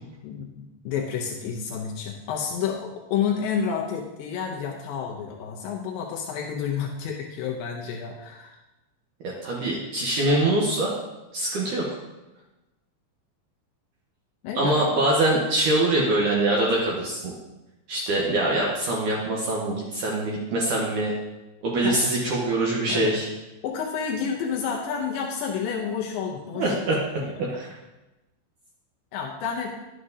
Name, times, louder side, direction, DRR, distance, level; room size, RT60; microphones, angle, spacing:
voice 1, 0.2-8.6 14.4-14.8 21.8-22.0 22.9-23.2 23.6-27.5 29.1-29.7, left 7 dB, 85° left, 0 dB, 2.0 m, -30 dB
voice 2, 9.2-10.9 11.3-11.8 14.6-17.3 17.9-21.1 21.6-23.3 26.6-27.0 27.4-27.8, right 2 dB, 75° right, -3 dB, 1.9 m, -24 dB
11.0 x 7.5 x 2.7 m, 1.0 s
omnidirectional pair, 5.0 m